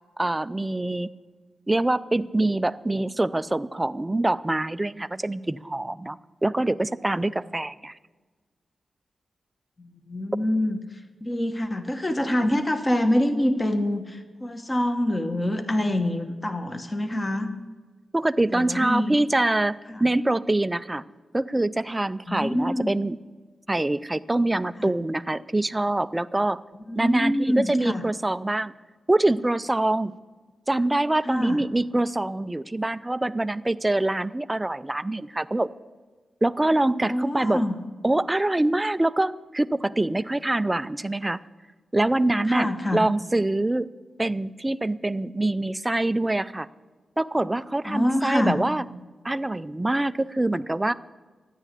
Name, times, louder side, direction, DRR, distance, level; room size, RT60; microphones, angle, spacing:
voice 1, 0.2-1.1 1.7-8.0 18.1-21.0 21.3-23.2 23.7-26.6 27.0-28.7 29.1-30.1 30.7-35.7 36.4-37.6 38.0-41.4 41.9-43.9 44.2-46.7 47.2-48.8 49.2-50.9, right 2 dB, 15° right, 14 dB, 0.4 m, -25 dB
voice 2, 9.8-10.8 11.2-17.5 18.5-19.1 19.9-20.1 22.3-22.9 24.8-24.9 26.9-28.0 31.2-31.6 37.0-37.7 42.5-43.0 47.8-48.6, left 1 dB, 20° left, 7 dB, 1.1 m, -25 dB
13.5 x 10.0 x 8.2 m, 1.4 s
wide cardioid pair, 120°, 0 cm